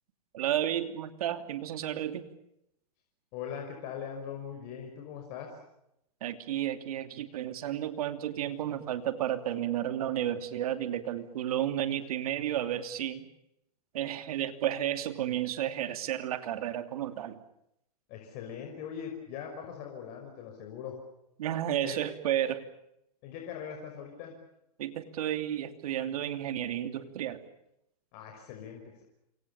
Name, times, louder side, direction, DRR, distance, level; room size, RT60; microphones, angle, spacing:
voice 1, 0.3-2.2 6.2-13.3 13.9-17.4 21.4-22.6 24.8-27.4, right 11 dB, 65° right, 9 dB, 2.9 m, -32 dB
voice 2, 3.3-5.5 18.1-20.9 21.8-22.0 23.2-24.3 28.1-29.0, left 8 dB, 45° left, 2 dB, 5.7 m, -41 dB
28.0 x 25.0 x 7.1 m, 0.82 s
hypercardioid pair, 125°, 20 cm